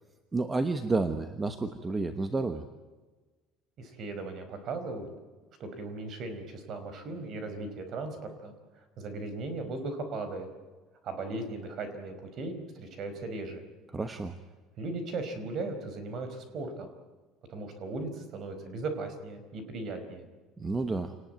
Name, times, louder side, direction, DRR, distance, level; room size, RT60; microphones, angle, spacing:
voice 1, 0.3-2.7 13.9-14.4 20.6-21.1, right 3 dB, 15° right, 9 dB, 1.2 m, -30 dB
voice 2, 3.8-5.1 5.6-8.5 9.0-10.5 11.0-13.6 14.8-16.9 17.5-20.3, right 3 dB, 40° right, 8 dB, 4.8 m, -37 dB
28.0 x 19.5 x 9.4 m, 1.3 s
cardioid pair, 165°, 0 cm